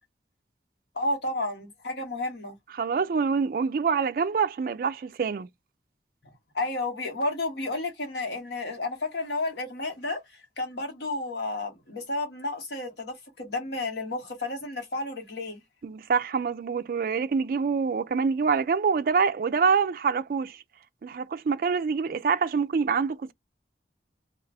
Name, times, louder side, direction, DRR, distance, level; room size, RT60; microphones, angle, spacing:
voice 1, 1.0-2.6 6.5-10.2 10.6-15.6, left 2 dB, 75° left, 1.2 m, -31 dB
voice 2, 2.8-5.5 15.8-20.6 21.0-23.3, right 5 dB, 50° right, 0.3 m, -26 dB
2.5 x 2.3 x 3.3 m
head